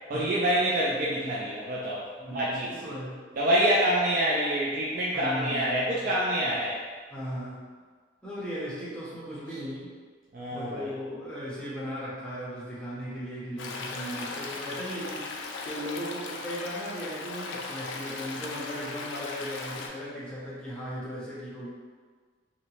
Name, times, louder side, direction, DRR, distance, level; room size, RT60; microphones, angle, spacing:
voice 1, 0.1-2.9 3.3-6.8 9.5-9.6 10.3-10.9, right 1 dB, 45° right, -6 dB, 0.3 m, -27 dB
voice 2, 2.2-3.2 5.1-5.8 7.1-7.7 8.2-9.9 10.5-21.7, equal, 5° left, -9 dB, 0.5 m, -37 dB
Stream, 13.6-19.9, left 3 dB, 85° left, 0.3 m, -38 dB
2.7 x 2.0 x 2.8 m, 1.5 s
head